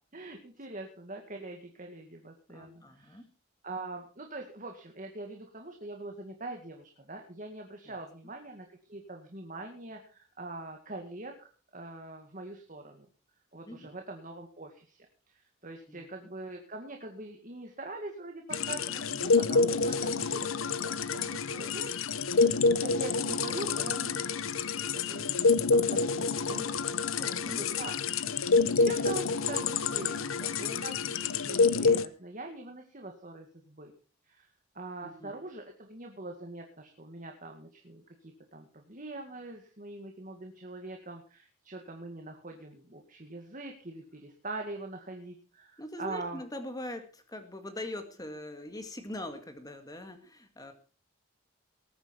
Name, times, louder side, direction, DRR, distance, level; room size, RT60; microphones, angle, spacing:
voice 1, 0.1-3.2 3.6-13.1 13.5-20.5 20.8-21.9 22.3-25.3 25.8-26.8 27.6-28.3 28.7-33.9 34.3-34.5 34.7-46.4, right 2 dB, 40° right, 3 dB, 2.0 m, -43 dB
voice 2, 2.5-3.3 7.9-8.0 13.7-13.9 15.9-16.1 27.2-27.9 28.5-28.8 35.0-35.3 45.8-50.7, left 1 dB, 20° left, 7 dB, 2.1 m, -42 dB
sound 1, 18.5-32.1, left 4 dB, 80° left, 0.8 m, -28 dB
20.0 x 9.4 x 4.5 m, 0.38 s
head